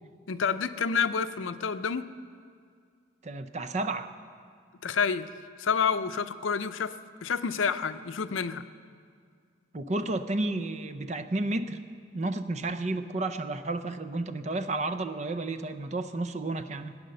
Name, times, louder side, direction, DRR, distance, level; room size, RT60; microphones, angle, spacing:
voice 1, 0.3-2.1 4.8-5.3 5.6-8.7, left 6 dB, 85° left, 12 dB, 0.6 m, -29 dB
voice 2, 3.2-4.1 9.7-11.8 12.1-17.0, right 2 dB, 35° right, 10 dB, 0.6 m, -31 dB
18.0 x 9.5 x 6.6 m, 2.1 s
head